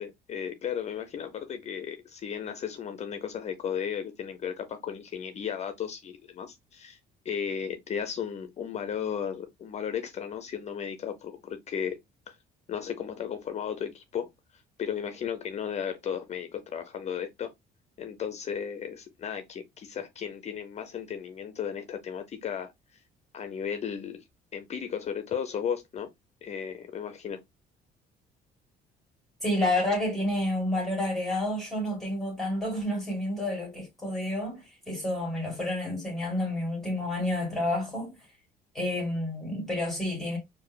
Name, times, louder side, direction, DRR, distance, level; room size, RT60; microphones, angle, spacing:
voice 1, 0.0-7.0 7.2-12.0 12.3-12.4 12.7-14.3 14.8-17.5 18.0-22.7 23.3-24.2 24.5-26.1 26.4-27.4, left 8 dB, 40° left, 0.6 m, -35 dB
voice 2, 29.4-38.2 38.7-40.4, left 1 dB, ahead, 1.8 m, -29 dB
4.6 x 2.6 x 2.2 m
cardioid pair, 110°, 17 cm